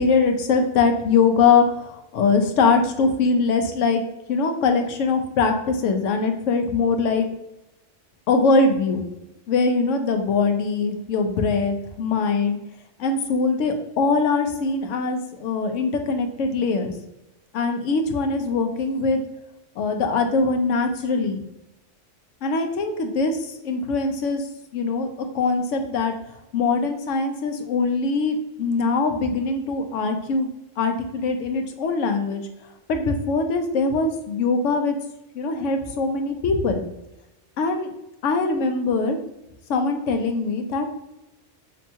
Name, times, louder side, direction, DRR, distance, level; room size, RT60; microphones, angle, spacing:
voice 1, 0.0-4.0 4.3-7.3 8.3-9.0 9.5-12.6 13.0-16.9 17.5-19.2 19.8-21.4 22.4-24.5 24.7-25.1 25.3-26.1 26.5-30.5 30.8-32.4 32.9-35.0 35.4-36.9 37.6-37.9 38.2-39.2 39.7-40.9, left 4 dB, 85° left, 6 dB, 0.9 m, -22 dB
5.2 x 2.2 x 2.8 m, 0.91 s
omnidirectional pair, 1.3 m